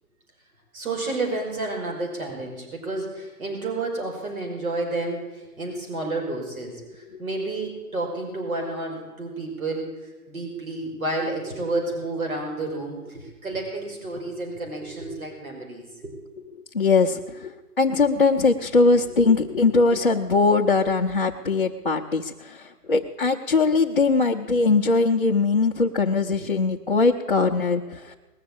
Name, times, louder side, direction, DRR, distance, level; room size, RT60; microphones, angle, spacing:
voice 1, 0.7-9.9 10.3-16.1, right 2 dB, 60° right, 1 dB, 5.4 m, -30 dB
voice 2, 16.7-28.1, left 4 dB, 35° left, -2 dB, 0.6 m, -21 dB
19.5 x 7.2 x 8.6 m, 1.1 s
hypercardioid pair, 175°, 46 cm